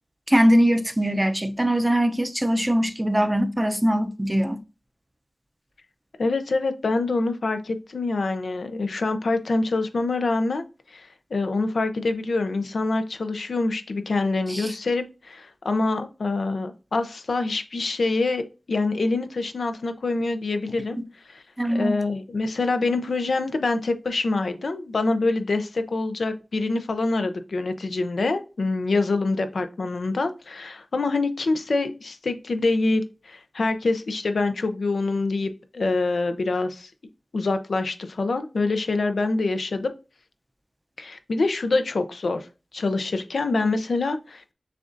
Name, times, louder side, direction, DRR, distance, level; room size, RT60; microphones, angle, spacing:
voice 1, 0.3-4.6 14.5-14.7 21.6-21.9, equal, 15° right, 0.6 m, -21 dB
voice 2, 6.2-10.6 10.9-18.4 18.7-21.0 21.3-21.4 21.7-36.9 37.3-39.9 41.0-42.5 42.7-44.5, left 3 dB, 85° left, 0.5 m, -25 dB
6.6 x 2.5 x 2.6 m
wide cardioid pair, 75°, 0 cm